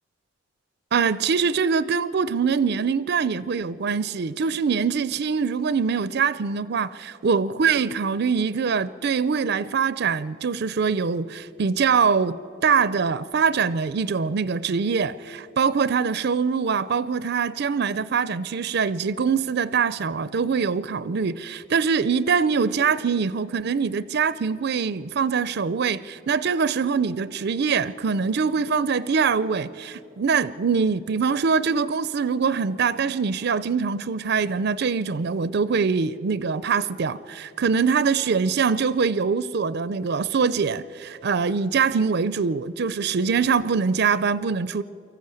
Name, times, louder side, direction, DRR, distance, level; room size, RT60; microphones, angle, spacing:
voice 1, 0.9-44.8, right 5 dB, 50° right, 0.4 m, -23 dB
23.5 x 14.5 x 9.0 m
head